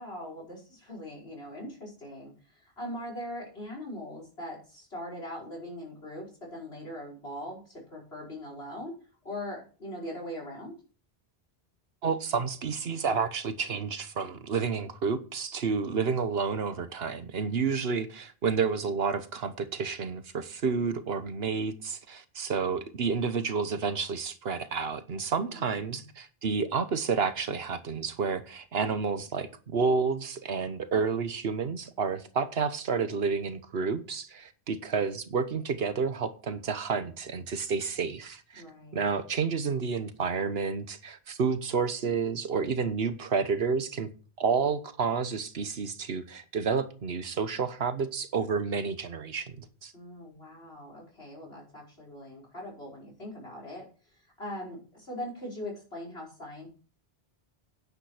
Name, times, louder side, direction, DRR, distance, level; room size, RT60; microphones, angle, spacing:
voice 1, 0.0-8.9 9.2-10.7 25.3-26.0 38.6-39.0 49.9-56.7, left 1 dB, 75° left, 5.6 m, -41 dB
voice 2, 12.0-38.6 38.9-44.1 44.4-49.9, right 5 dB, 70° right, 1.3 m, -30 dB
10.5 x 9.5 x 4.9 m
omnidirectional pair, 1.1 m